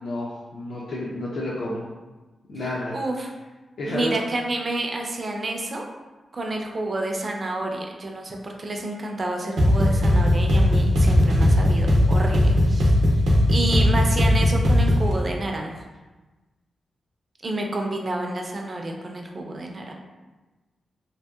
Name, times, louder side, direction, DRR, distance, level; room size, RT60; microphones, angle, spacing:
voice 1, 0.0-1.9 2.5-3.0 3.8-4.1, left 1 dB, 65° left, -5 dB, 0.4 m, -30 dB
voice 2, 2.9-3.3 3.9-5.8 6.3-12.9 13.5-15.8 17.4-19.9, right 2 dB, 30° right, 2 dB, 0.3 m, -29 dB
sound 1, 9.6-15.1, left 1 dB, 85° right, 0.6 m, -18 dB
2.8 x 2.7 x 2.2 m, 1.2 s
wide cardioid pair, 160°, 0 cm